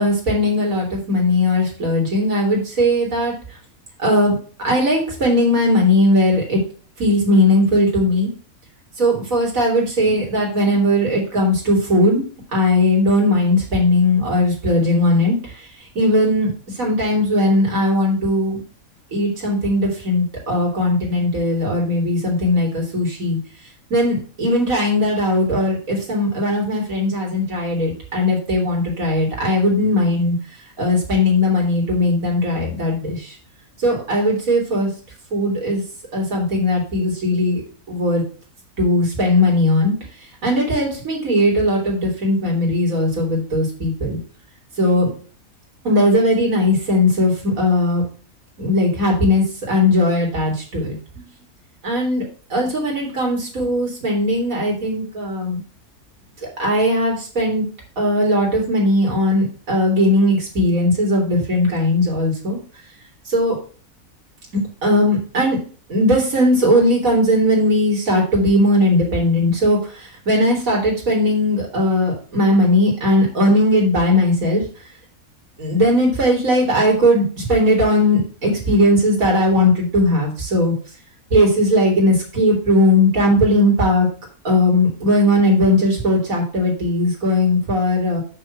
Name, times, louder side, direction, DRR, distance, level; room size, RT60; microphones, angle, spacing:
voice 1, 0.0-3.3 4.0-4.4 4.6-6.6 7.0-8.3 9.0-12.2 12.5-15.4 16.0-16.5 16.8-18.6 19.1-23.4 23.9-30.4 30.8-33.3 33.8-34.9 35.3-35.8 36.1-37.6 37.9-38.2 38.8-39.9 40.4-44.2 44.8-45.1 45.8-48.0 48.6-51.0 51.8-52.3 52.5-55.6 56.6-57.6 58.0-62.6 63.3-63.6 64.8-65.6 65.9-69.8 70.3-74.6 75.6-80.7 81.3-84.1 84.4-88.2, left 1 dB, 65° right, -2 dB, 3.4 m, -18 dB
6.4 x 6.3 x 5.9 m, 0.39 s
omnidirectional pair, 1.5 m